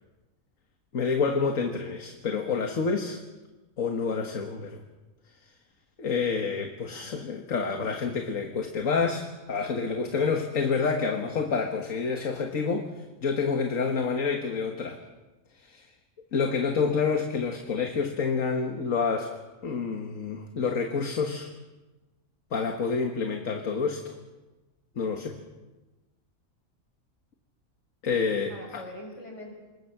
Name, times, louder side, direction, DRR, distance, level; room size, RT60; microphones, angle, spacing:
voice 1, 0.9-3.2 3.8-4.8 6.0-12.9 13.2-15.0 15.6-15.9 16.3-19.3 19.6-21.5 22.5-24.1 25.0-25.4 28.0-28.8, left 5 dB, 80° left, 4 dB, 1.9 m, -28 dB
voice 2, 6.9-7.3 28.5-29.6, left 1 dB, 60° left, 0 dB, 6.9 m, -44 dB
26.5 x 20.5 x 5.9 m, 1.2 s
omnidirectional pair, 1.4 m